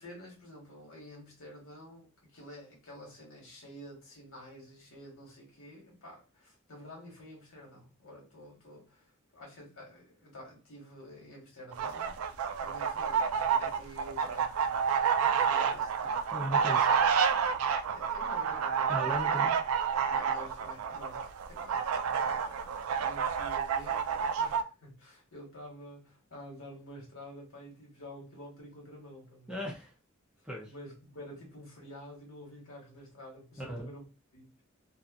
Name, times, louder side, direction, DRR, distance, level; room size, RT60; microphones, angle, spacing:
voice 1, 0.0-14.7 15.2-16.2 17.9-18.9 20.0-29.7 30.6-34.6, equal, 75° left, 1.2 m, -49 dB
sound 1, 11.7-24.6, right 7 dB, 85° right, 0.3 m, -29 dB
voice 2, 16.3-16.9 18.9-19.5 29.5-29.9 30.4-30.7 33.6-33.9, equal, 5° right, 0.6 m, -37 dB
2.6 x 2.3 x 2.5 m
head